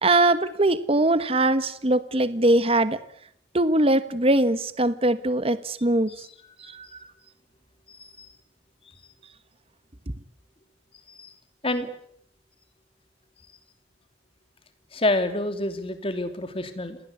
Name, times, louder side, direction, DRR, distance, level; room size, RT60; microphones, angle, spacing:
voice 1, 0.0-3.0 3.5-6.1 6.7-6.9, right 2 dB, 35° right, 14 dB, 1.2 m, -21 dB
voice 2, 7.9-8.3 11.1-11.3 11.6-11.9 14.9-17.0, left 1 dB, 30° left, 9 dB, 3.1 m, -28 dB
27.5 x 20.0 x 8.5 m, 0.66 s
head